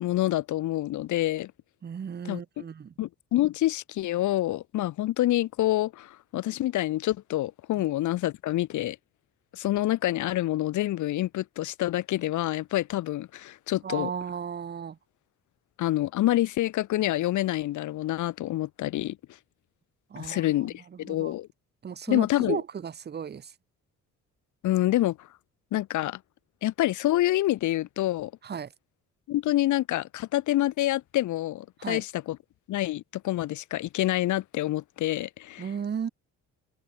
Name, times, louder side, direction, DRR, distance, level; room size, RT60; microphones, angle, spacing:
voice 1, 0.0-1.5 2.2-2.6 3.0-9.0 9.5-14.1 15.8-19.2 20.2-21.5 22.1-22.6 24.6-25.3 25.7-26.2 26.6-28.3 29.3-32.4 32.7-35.7, left 15 dB, 75° left, 0.9 m, -27 dB
voice 2, 1.8-2.9 13.8-15.0 20.1-20.5 21.1-21.3 21.8-23.5 28.4-28.7 31.8-32.0 35.6-36.1, right 7 dB, 35° right, 1.0 m, -34 dB
open air
cardioid pair, 90°, 30 cm